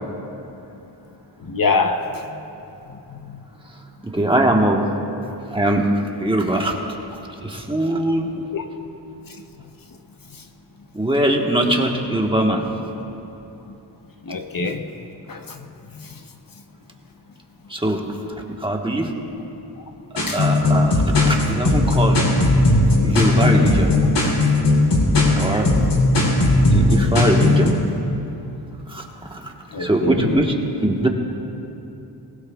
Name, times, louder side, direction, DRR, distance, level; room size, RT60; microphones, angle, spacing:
voice 1, 1.5-2.2 3.1-3.4 8.5-8.6 14.3-14.8 15.3-15.6 20.3-20.4 29.7-30.4, left 4 dB, 50° left, 6 dB, 0.8 m, -24 dB
voice 2, 4.0-4.8 5.5-7.0 7.4-8.3 10.9-12.7 17.7-18.0 18.6-19.1 20.3-22.2 23.0-23.9 24.2-24.3 25.4-25.7 26.7-27.7 28.9-29.5 29.8-30.5 30.8-31.1, right 1 dB, 10° right, 0 dB, 1.3 m, -21 dB
sound 1, 20.2-27.7, left 2 dB, 70° left, 3.3 m, -17 dB
20.5 x 19.0 x 2.3 m, 2.9 s
wide cardioid pair, 105°, 43 cm